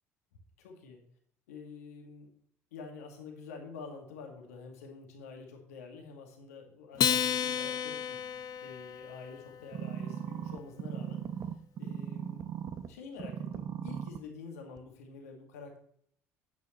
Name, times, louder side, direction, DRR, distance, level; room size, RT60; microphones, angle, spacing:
voice 1, 0.6-1.0 1.5-2.3 2.7-8.2 8.6-11.2 11.8-12.4 12.9-15.8, left 5 dB, 80° left, 2 dB, 1.9 m, -47 dB
Acoustic guitar, 7.0-9.6, left 9 dB, 50° left, 0.8 m, -32 dB
sound 1, 9.7-12.9 13.2-14.2 14.8-14.9, right 8 dB, 45° right, 0.8 m, -38 dB
10.5 x 8.4 x 3.1 m, 0.63 s
hypercardioid pair, 60°, 8 cm